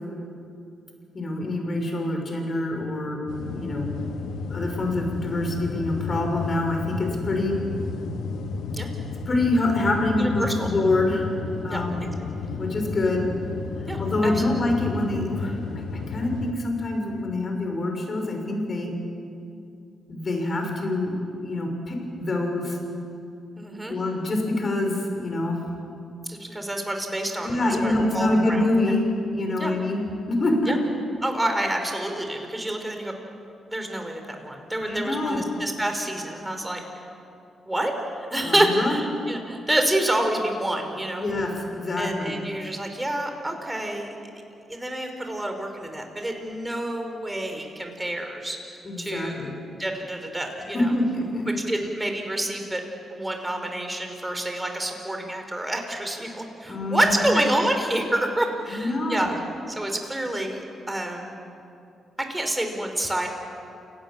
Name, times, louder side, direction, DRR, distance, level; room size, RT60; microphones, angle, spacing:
voice 1, 1.1-4.0 4.5-7.6 9.3-11.3 11.6-12.0 12.6-13.2 14.0-18.9 20.1-22.8 23.9-25.6 27.4-29.0 29.3-30.0 30.3-30.7 34.8-35.4 38.4-39.0 41.2-42.3 48.8-49.5 50.7-51.4 56.6-57.3 58.7-59.3, left 2 dB, 45° left, 3 dB, 6.1 m, -26 dB
sound 1, 3.3-16.5, left 4 dB, 75° left, 1.5 m, -32 dB
voice 2, 10.2-10.7 11.7-11.8 13.9-14.6 23.6-24.0 26.3-28.7 29.6-29.7 30.7-30.8 31.2-33.1 33.7-36.8 37.7-37.9 38.2-41.3 42.0-44.1 44.7-49.5 49.8-50.9 51.5-52.8 53.1-59.3 59.7-61.4 62.3-63.3, right 1 dB, 15° right, 4 dB, 5.4 m, -28 dB
29.0 x 18.5 x 7.6 m, 2.6 s
hypercardioid pair, 45°, 0 cm